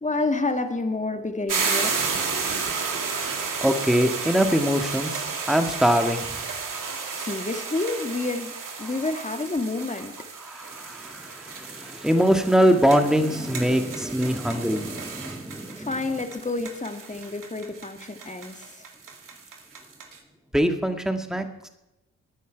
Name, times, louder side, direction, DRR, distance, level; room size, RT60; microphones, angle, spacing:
voice 1, 0.0-2.2 7.1-8.5 8.8-10.1 15.8-18.9, left 3 dB, 20° left, 6 dB, 2.0 m, -29 dB
sound 1, 1.5-20.2, right 5 dB, 55° right, 2.4 m, -32 dB
voice 2, 3.6-6.5 10.4-15.9 20.5-21.7, equal, ahead, 6 dB, 1.9 m, -23 dB
17.5 x 10.0 x 4.7 m, 0.95 s
hypercardioid pair, 40°, 38 cm